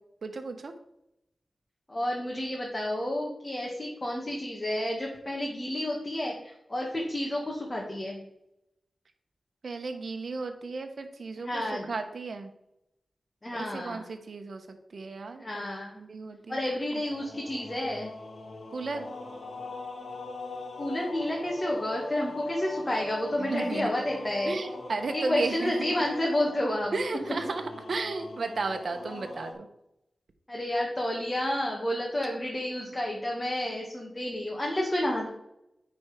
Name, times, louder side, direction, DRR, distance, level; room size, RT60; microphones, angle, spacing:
voice 1, 0.2-0.7 9.6-12.5 13.5-16.6 16.9-17.0 18.7-19.1 23.4-23.9 24.4-25.9 26.9-29.7, right 3 dB, 65° right, 7 dB, 1.1 m, -34 dB
voice 2, 1.9-8.2 11.4-11.9 13.4-14.0 15.4-16.0 16.5-18.1 20.8-24.6 25.1-26.9 30.5-35.3, left 1 dB, 25° left, -2 dB, 1.9 m, -30 dB
sound 1, 17.0-29.5, left 2 dB, 55° left, 1.8 m, -40 dB
9.6 x 4.4 x 5.1 m, 0.82 s
wide cardioid pair, 80°, 0 cm